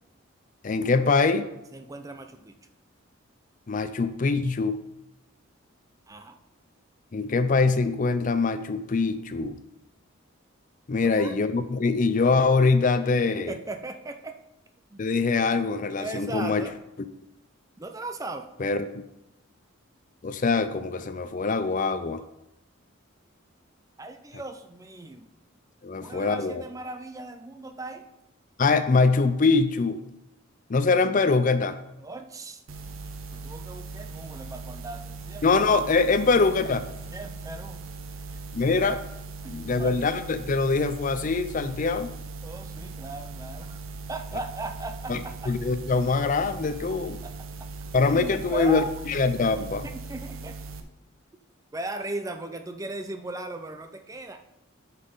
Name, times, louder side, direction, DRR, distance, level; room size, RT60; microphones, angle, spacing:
voice 1, 0.6-1.5 3.7-4.8 7.1-9.6 10.9-13.5 15.0-16.7 18.6-19.0 20.2-22.2 25.8-26.6 28.6-30.0 30.7-31.8 35.4-36.8 38.5-39.0 39.5-42.1 45.1-45.2 45.5-47.2 47.9-49.8, left 4 dB, 40° left, 11 dB, 0.4 m, -23 dB
voice 2, 1.7-2.6 6.1-6.3 11.0-11.4 13.4-14.4 14.9-15.0 16.0-16.7 17.8-18.5 24.0-25.3 26.0-28.0 32.0-32.6 33.3-35.8 36.6-36.7 37.1-37.8 38.2-38.4 39.4-40.0 42.4-45.5 47.2-47.7 48.0-48.9 49.8-50.6 51.7-54.4, right 2 dB, 15° right, 7 dB, 0.5 m, -38 dB
sound 1, 32.7-50.8, right 4 dB, 75° right, 0.8 m, -39 dB
9.7 x 5.7 x 3.9 m, 0.92 s
head